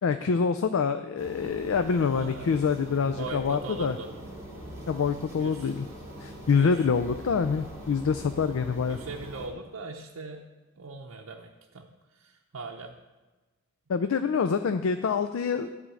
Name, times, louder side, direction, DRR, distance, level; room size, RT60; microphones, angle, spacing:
voice 1, 0.0-4.0 4.9-5.9 6.2-9.0 13.9-15.7, left 5 dB, 75° left, 10 dB, 0.4 m, -26 dB
sound 1, 1.2-9.5, right 1 dB, 15° right, 2.7 m, -43 dB
voice 2, 2.0-2.6 3.0-4.1 5.4-5.7 6.5-6.7 8.9-10.4 10.8-11.5 11.7-11.9 12.2-12.9, right 3 dB, 85° right, -1 dB, 0.7 m, -40 dB
11.0 x 3.8 x 7.6 m, 1.2 s
head